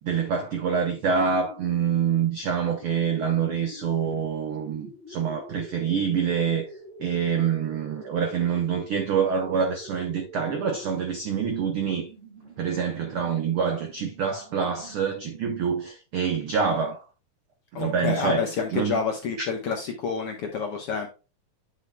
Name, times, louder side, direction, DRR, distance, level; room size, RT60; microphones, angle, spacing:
voice 1, 0.0-6.7 7.0-12.1 12.6-17.1 17.7-19.0 19.4-19.5, right 6 dB, 90° right, 1.1 m, -26 dB
sound 1, 2.2-15.9, right 1 dB, 20° right, 2.0 m, -47 dB
voice 2, 17.7-21.1, left 6 dB, 70° left, 1.5 m, -28 dB
9.5 x 6.4 x 2.2 m
omnidirectional pair, 3.8 m